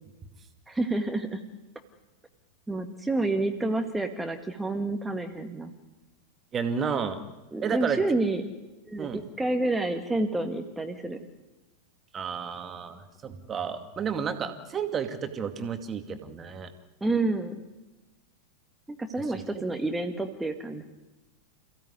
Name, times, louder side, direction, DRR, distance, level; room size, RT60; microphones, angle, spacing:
voice 1, 0.7-1.4 2.7-5.7 7.5-8.4 8.9-11.2 17.0-17.5 18.9-20.8, right 2 dB, 10° right, 5 dB, 1.9 m, -29 dB
voice 2, 6.5-7.2 7.6-8.0 9.0-9.2 12.1-16.7 19.5-19.6, right 6 dB, 25° right, 8 dB, 2.3 m, -31 dB
28.5 x 16.5 x 9.5 m, 1.1 s
figure-of-eight pair, 90°, 0 cm